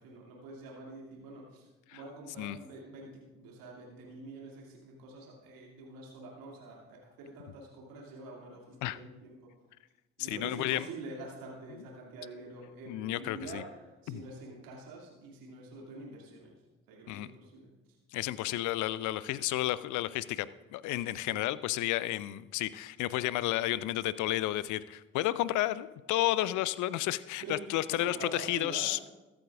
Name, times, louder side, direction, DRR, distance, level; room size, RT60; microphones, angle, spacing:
voice 1, 0.0-9.5 10.2-16.6 16.9-17.7 21.1-21.4 27.0-27.1 27.4-29.1, right 2 dB, 60° right, -2 dB, 2.5 m, -46 dB
voice 2, 10.3-10.8 12.9-13.6 14.1-14.2 17.1-17.3 18.1-20.5 20.7-29.0, left 15 dB, 50° left, 18 dB, 0.6 m, -32 dB
22.0 x 8.6 x 2.5 m, 1.1 s
figure-of-eight pair, 40°, 38 cm